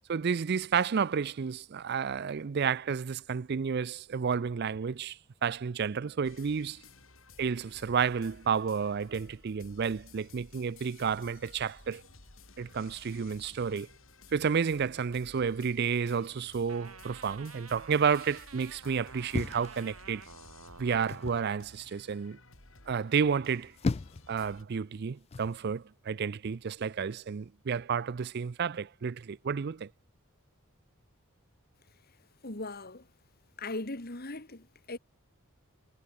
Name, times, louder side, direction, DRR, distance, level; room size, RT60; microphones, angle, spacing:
voice 1, 0.1-6.8 7.4-12.0 12.6-13.9 14.3-20.3 20.8-22.4 22.9-23.7 24.3-29.9, right 6 dB, 50° right, 0.4 m, -31 dB
sound 1, 6.2-24.6, left 3 dB, 65° left, 7.3 m, -56 dB
sound 2, 16.7-21.6, right 5 dB, 80° right, 4.2 m, -51 dB
sound 3, 19.3-20.4 21.1-21.5 23.4-24.3 25.3-25.6, left 3 dB, 30° left, 0.4 m, -35 dB
voice 2, 32.4-33.0 33.6-35.0, left 2 dB, 45° left, 1.9 m, -39 dB
head